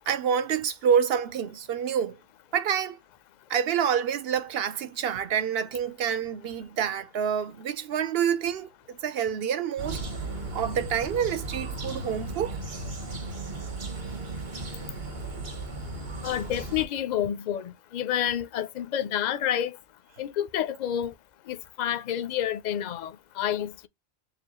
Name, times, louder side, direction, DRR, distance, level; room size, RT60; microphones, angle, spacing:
voice 1, 0.1-2.2 2.5-3.0 3.5-10.0 10.5-12.6, right 8 dB, 70° right, 0.9 m, -27 dB
sound 1, 9.8-16.9, right 2 dB, 45° right, 1.3 m, -36 dB
voice 2, 16.2-19.8 20.2-21.1 21.5-23.9, left 10 dB, 55° left, 0.5 m, -29 dB
6.8 x 2.3 x 2.9 m
omnidirectional pair, 1.1 m